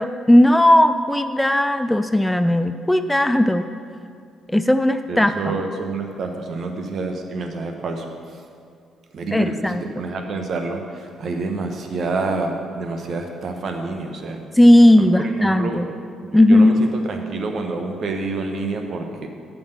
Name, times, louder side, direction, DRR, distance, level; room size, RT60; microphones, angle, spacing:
voice 1, 0.0-3.7 4.5-5.6 9.3-9.8 14.5-15.9 16.3-16.8, left 1 dB, 10° left, 10 dB, 0.4 m, -16 dB
voice 2, 5.1-8.0 9.1-14.4 15.0-15.1 15.4-15.8 16.5-19.3, right 3 dB, 55° right, 4 dB, 1.0 m, -28 dB
7.1 x 6.1 x 6.7 m, 2.3 s
hypercardioid pair, 45°, 0 cm